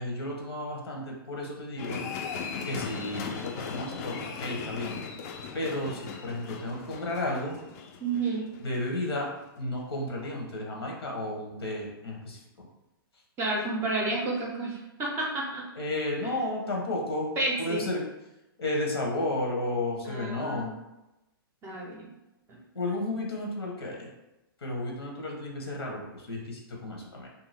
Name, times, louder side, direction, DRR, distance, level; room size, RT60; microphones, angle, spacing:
voice 1, 0.0-2.0 2.6-5.0 5.5-7.6 8.6-9.3 9.6-12.4 15.8-17.3 17.6-18.0 18.6-20.7 22.7-24.1 24.6-27.3, left 1 dB, 90° left, 0 dB, 0.9 m, -32 dB
sound 1, 1.8-9.1 9.4-9.5, left 6 dB, 40° left, 0.4 m, -38 dB
voice 2, 8.0-8.4 13.4-15.6 16.2-16.4 17.4-17.9 20.0-20.7 21.6-22.1 22.5-22.6, right 2 dB, 20° right, -2 dB, 0.5 m, -31 dB
2.6 x 2.3 x 3.2 m, 0.96 s
hypercardioid pair, 140°, 13 cm